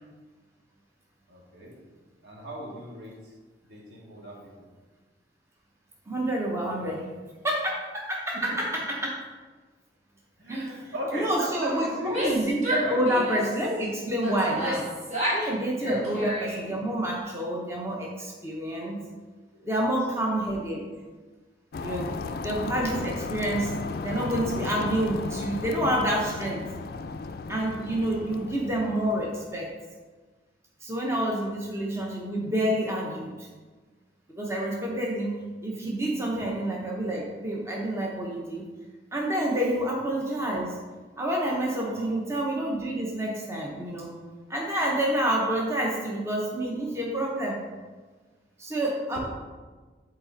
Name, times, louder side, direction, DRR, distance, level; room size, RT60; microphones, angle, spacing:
voice 1, 1.3-1.8 2.2-3.3 3.7-4.7 6.8-7.0 8.3-8.6 10.4-12.2 12.8-13.0 15.8-16.0 19.5-19.9 21.9-22.3 28.3-28.6 39.9-40.0 41.9-42.2, equal, 80° right, -4 dB, 1.8 m, -38 dB
voice 2, 6.1-7.0 7.4-9.2 10.5-10.7 11.1-14.9 15.3-19.0 19.6-20.8 21.8-22.1 22.4-26.6 27.5-29.7 30.8-33.5 34.4-38.7 39.1-40.7 41.2-44.1 44.5-47.6 48.6-49.2, right 1 dB, 15° right, -2 dB, 0.8 m, -28 dB
Female speech woman speaking / Yell, 12.0-13.6 14.2-15.5 15.8-16.8, equal, 40° right, 1.8 m, -30 dB
sound 1, 21.7-29.7, left 4 dB, 55° left, 0.3 m, -35 dB
7.7 x 4.2 x 3.9 m, 1.3 s
head